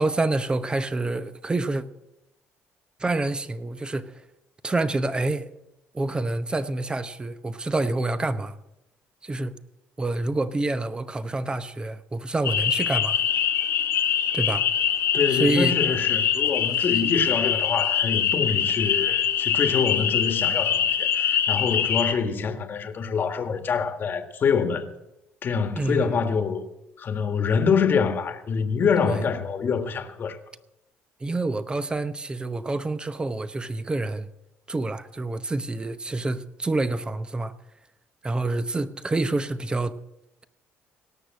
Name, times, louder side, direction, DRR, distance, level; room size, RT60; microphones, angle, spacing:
voice 1, 0.0-1.9 3.0-4.2 4.6-5.5 5.9-8.6 9.2-9.6 10.0-13.2 14.3-14.7 15.3-15.8 25.8-26.2 29.0-29.2 31.2-34.3 34.7-37.5 38.2-39.9, right 2 dB, 20° right, 0.9 m, -27 dB
sound 1, 12.4-22.1, left 8 dB, 70° left, 1.4 m, -24 dB
voice 2, 15.1-24.9 25.4-26.7 27.0-30.4, left 6 dB, 45° left, 1.5 m, -25 dB
18.0 x 6.7 x 7.5 m
supercardioid pair, 85°, 5 cm